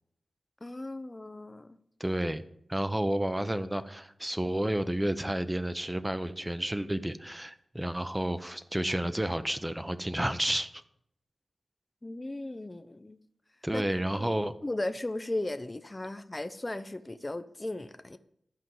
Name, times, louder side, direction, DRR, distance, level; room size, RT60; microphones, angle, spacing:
voice 1, 0.6-1.8 12.0-13.2 13.7-13.8 14.2-18.2, left 2 dB, 25° left, 11 dB, 0.6 m, -36 dB
voice 2, 2.0-2.4 2.7-10.8 13.6-14.5, right 1 dB, 10° right, 12 dB, 0.8 m, -31 dB
12.5 x 5.3 x 7.8 m, 0.72 s
wide cardioid pair, 85°, 0 cm